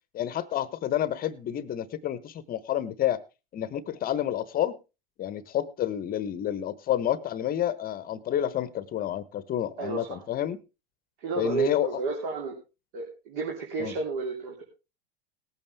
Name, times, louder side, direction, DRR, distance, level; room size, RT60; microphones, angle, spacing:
voice 1, 0.1-3.2 3.5-4.7 5.2-10.6 11.4-11.9 13.8-13.9, left 11 dB, 30° left, 17 dB, 0.9 m, -29 dB
voice 2, 9.8-10.2 11.2-12.5 12.9-14.6, right 4 dB, 60° right, 1 dB, 3.2 m, -31 dB
19.0 x 8.7 x 3.4 m, 0.28 s
hypercardioid pair, 110°, 30 cm